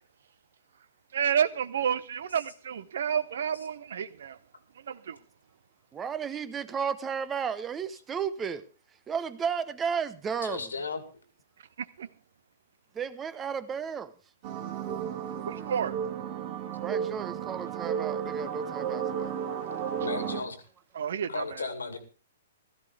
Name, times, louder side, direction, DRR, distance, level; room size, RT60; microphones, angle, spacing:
voice 1, 1.1-4.4 4.9-5.2 12.0-12.1 15.5-16.0 20.9-21.7, right 8 dB, 60° right, 0.7 m, -30 dB
voice 2, 5.9-8.6 9.1-10.7 12.9-14.1 16.8-19.3, right 6 dB, 15° right, 0.7 m, -33 dB
voice 3, 10.4-11.0 20.0-20.6 21.3-22.0, left 4 dB, 75° left, 2.1 m, -34 dB
sound 1, 14.4-20.4, right 8 dB, 40° right, 1.9 m, -33 dB
16.0 x 13.5 x 3.4 m
figure-of-eight pair, 115°, 0 cm